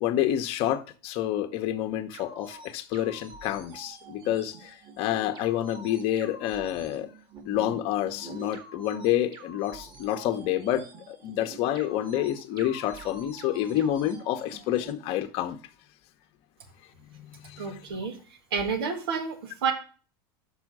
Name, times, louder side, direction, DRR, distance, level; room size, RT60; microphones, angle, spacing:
voice 1, 0.0-7.1 7.5-15.6 17.1-17.8, left 12 dB, 55° left, 1.0 m, -28 dB
sound 1, 2.1-14.9, right 3 dB, 35° right, 1.8 m, -47 dB
voice 2, 17.6-18.2 18.5-19.7, right 5 dB, 85° right, 1.7 m, -29 dB
6.1 x 5.6 x 6.1 m
supercardioid pair, 115°, 12 cm